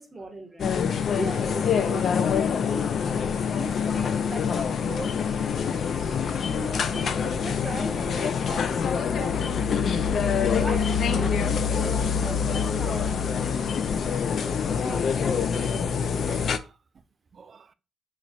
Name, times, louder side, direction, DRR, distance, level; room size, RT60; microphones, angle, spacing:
voice 1, 0.0-0.8 1.1-5.2 6.4-9.6 10.6-11.4 11.7-13.4 14.0-15.6, right 2 dB, 20° right, 0.7 m, -39 dB
sound 1, 0.6-16.6, left 6 dB, 55° left, 0.3 m, -25 dB
Telephone, 1.6-1.9 2.2-3.3 3.8-3.9 4.4-4.5 4.9-6.0 7.3-7.9, left 4 dB, 75° left, 0.8 m, -49 dB
sound 2, 5.0-6.2 6.5-6.6 7.0-7.3 7.8-8.7 9.0-10.7 11.0-11.4 11.8-12.7, left 2 dB, 40° left, 0.7 m, -47 dB
voice 2, 10.1-10.5 12.9-13.0 13.6-14.0 16.3-16.7 17.3-17.7, right 5 dB, 45° right, 0.3 m, -52 dB
3.1 x 2.3 x 4.0 m
cardioid pair, 90°, 0 cm